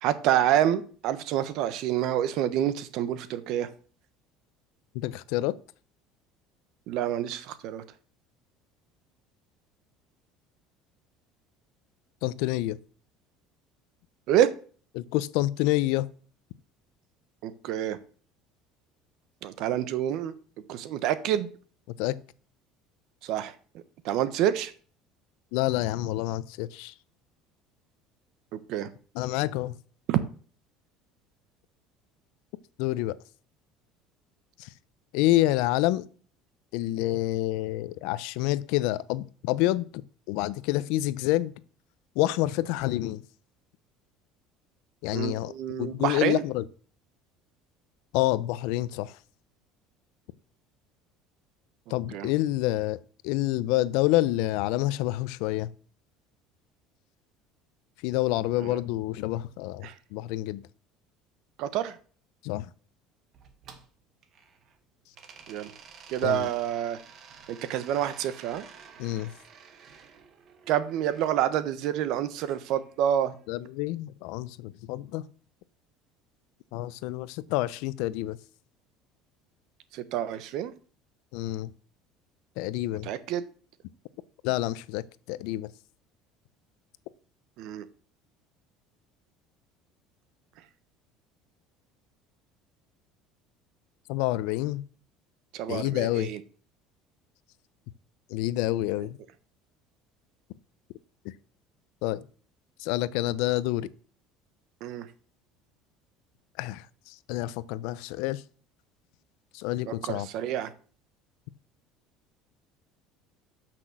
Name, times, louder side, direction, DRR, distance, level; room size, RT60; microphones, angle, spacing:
voice 1, 0.0-3.7 6.9-7.8 14.3-14.5 17.4-18.0 19.4-20.3 20.7-21.5 23.2-23.6 24.0-24.7 28.5-28.9 30.1-30.2 45.1-46.4 52.1-52.3 58.6-58.8 59.8-60.0 61.6-62.0 65.5-65.7 66.1-67.0 67.5-68.6 70.7-73.3 79.9-80.7 83.0-83.4 87.6-87.9 95.5-96.4 99.0-99.1 104.8-105.1 109.9-110.7, right 11 dB, 60° right, 1.0 m, -28 dB
voice 2, 4.9-5.6 12.2-12.8 14.9-16.1 22.0-22.2 25.5-26.9 29.2-29.8 32.8-33.2 34.6-34.7 35.1-36.1 36.7-39.9 40.3-41.5 42.2-43.2 45.0-45.5 45.8-46.6 48.1-49.2 51.9-55.7 58.0-60.6 62.4-62.7 66.2-66.5 69.0-69.3 73.5-75.3 76.7-78.4 81.3-81.7 82.6-83.1 84.4-85.7 94.1-94.8 95.7-96.3 98.3-99.2 101.2-101.3 102.0-102.3 102.8-103.9 106.6-108.4 109.5-110.3, left 16 dB, 75° left, 0.6 m, -28 dB
sound 1, 63.3-64.8 65.1-71.3 72.4-73.5, right 6 dB, 40° right, 1.5 m, -51 dB
12.5 x 6.1 x 6.1 m
cardioid pair, 155°, 0 cm